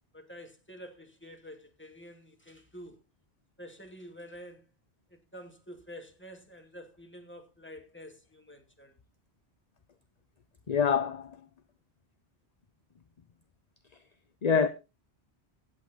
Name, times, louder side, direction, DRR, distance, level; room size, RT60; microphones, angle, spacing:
voice 1, 0.1-3.0 3.6-4.6 5.1-8.9, equal, 10° left, 2.6 m, -48 dB
voice 2, 10.7-11.4 14.4-14.7, left 6 dB, 40° left, 0.8 m, -25 dB
16.5 x 8.6 x 4.0 m
omnidirectional pair, 1.1 m